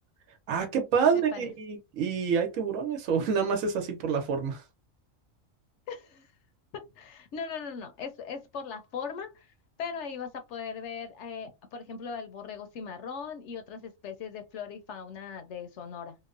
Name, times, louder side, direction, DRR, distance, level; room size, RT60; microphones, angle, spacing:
voice 1, 0.5-4.6, right 6 dB, 80° right, 1.1 m, -27 dB
voice 2, 1.1-1.5 5.9-6.3 6.7-9.5 9.8-16.2, left 6 dB, 65° left, 0.8 m, -39 dB
2.9 x 2.0 x 2.4 m
omnidirectional pair, 1.4 m